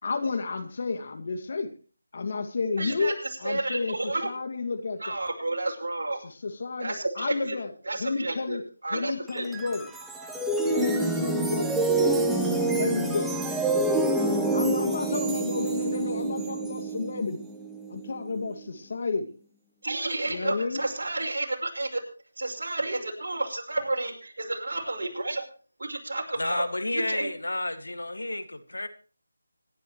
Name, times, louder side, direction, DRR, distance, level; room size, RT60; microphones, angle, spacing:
voice 1, 0.0-1.7 2.1-5.2 6.2-7.7 8.0-8.6 8.9-9.9 10.8-11.8 12.8-13.3 14.5-17.4 17.9-19.3 20.3-20.8, left 4 dB, 45° left, 6 dB, 2.3 m, -31 dB
voice 2, 2.8-3.1 3.4-4.3 5.0-6.2 6.8-7.6 7.9-8.6 8.8-9.5 19.8-22.0 22.4-25.4 25.8-26.6 26.9-27.3, right 2 dB, 60° right, 0 dB, 5.5 m, -31 dB
sound 1, 9.3-18.5, right 2 dB, 5° right, 1.1 m, -27 dB
voice 3, 26.4-28.9, left 2 dB, 85° left, 10 dB, 2.0 m, -31 dB
25.5 x 11.0 x 3.2 m, 0.38 s
figure-of-eight pair, 165°, 0 cm